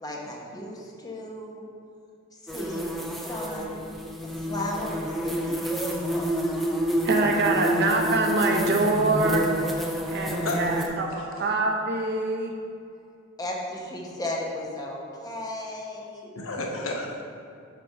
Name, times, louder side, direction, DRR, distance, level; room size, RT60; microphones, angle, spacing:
voice 1, 0.0-1.6 2.3-3.8 4.2-6.3 13.4-16.3, left 1 dB, 20° left, -2 dB, 0.8 m, -35 dB
sound 1, 2.5-10.9, equal, ahead, 0.5 m, -29 dB
voice 2, 7.0-9.4 9.7-12.5, right 2 dB, 55° right, 1 dB, 0.7 m, -25 dB
voice 3, 10.4-11.3 16.3-17.2, left 2 dB, 70° left, 0 dB, 0.9 m, -32 dB
6.9 x 3.4 x 5.3 m, 2.5 s
head